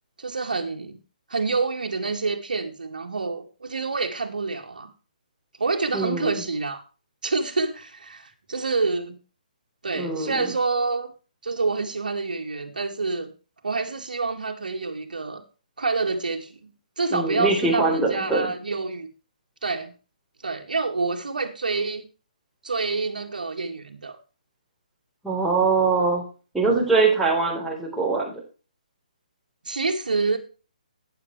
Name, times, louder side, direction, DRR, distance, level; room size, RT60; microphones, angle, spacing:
voice 1, 0.2-1.0 1.3-4.9 5.6-6.8 7.2-9.2 9.8-11.1 11.4-13.3 13.6-15.4 15.8-16.7 17.0-19.1 19.6-19.9 20.4-22.1 22.6-24.2 29.7-30.4, right 3 dB, 75° right, 2.2 m, -27 dB
voice 2, 5.9-6.4 10.0-10.5 17.1-18.5 25.2-26.2 26.5-28.4, right 3 dB, 5° right, 4.0 m, -23 dB
12.5 x 9.6 x 3.2 m
figure-of-eight pair, 145°, 5 cm